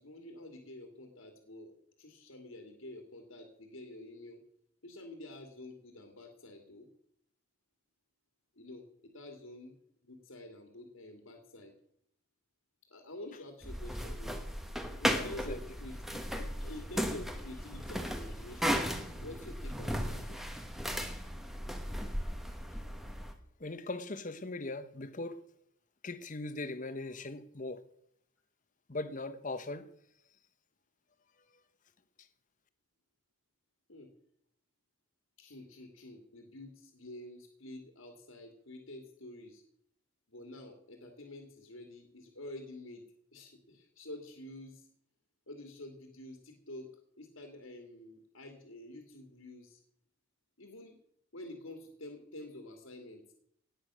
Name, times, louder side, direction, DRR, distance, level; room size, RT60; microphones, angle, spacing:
voice 1, 0.0-4.4 4.8-6.9 8.6-9.8 10.0-11.7 12.9-14.4 15.0-18.8 19.2-20.4 33.9-34.1 35.4-39.6 40.3-43.0 43.3-44.9 45.5-46.9 47.2-49.8 50.6-51.0 51.3-53.3, left 1 dB, 80° left, 2.5 m, -48 dB
sound 1, 13.6-23.3, equal, ahead, 1.3 m, -36 dB
voice 2, 15.1-15.6 23.6-25.4 26.0-27.8 28.9-29.9 32.2-32.3, left 2 dB, 40° left, 1.0 m, -40 dB
18.5 x 8.8 x 6.2 m
head